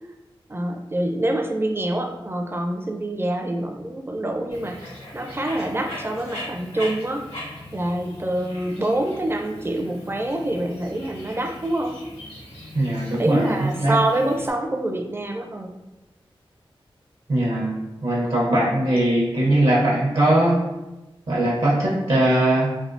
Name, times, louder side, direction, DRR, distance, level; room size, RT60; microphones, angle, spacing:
voice 1, 0.5-7.3 7.7-12.0 13.2-15.7, right 1 dB, 25° right, 3 dB, 0.4 m, -26 dB
Bird, 4.5-14.5, left 1 dB, 80° left, 1.0 m, -40 dB
voice 2, 12.7-14.0 17.3-17.7 18.0-20.6 21.3-22.7, right 1 dB, 70° right, -4 dB, 0.7 m, -20 dB
3.4 x 2.3 x 2.5 m, 1.0 s
cardioid pair, 50°, 10 cm